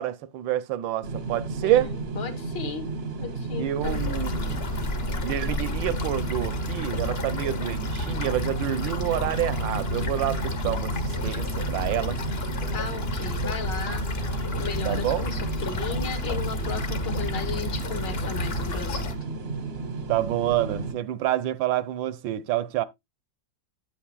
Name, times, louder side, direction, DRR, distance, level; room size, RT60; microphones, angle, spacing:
voice 1, 0.0-1.9 3.6-4.6 5.2-12.2 14.8-15.3 20.1-22.8, right 13 dB, 80° right, 1.3 m, -28 dB
sound 1, 1.0-20.9, right 3 dB, 50° right, 0.7 m, -33 dB
voice 2, 1.6-2.9 3.2-4.1 12.7-14.0 14.6-19.1, left 6 dB, 65° left, 2.3 m, -35 dB
sound 2, 3.8-19.1, left 2 dB, 40° left, 1.0 m, -31 dB
8.8 x 8.8 x 2.3 m
omnidirectional pair, 2.1 m